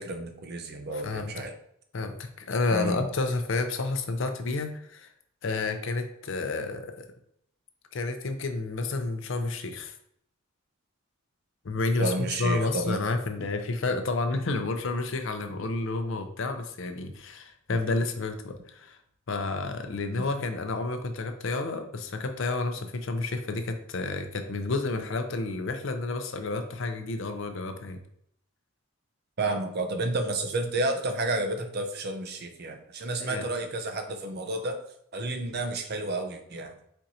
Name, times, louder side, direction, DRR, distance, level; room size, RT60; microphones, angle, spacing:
voice 1, 0.0-1.5 2.7-3.1 12.0-13.0 17.7-17.8 20.1-20.3 29.4-34.8 35.1-36.7, right 2 dB, 50° right, 5 dB, 0.6 m, -31 dB
voice 2, 0.9-1.4 1.9-5.1 5.4-6.9 7.9-9.9 11.6-12.1 12.4-19.0 19.3-28.0 33.2-33.5, left 3 dB, 65° left, 6 dB, 0.6 m, -30 dB
4.4 x 2.6 x 4.1 m, 0.71 s
head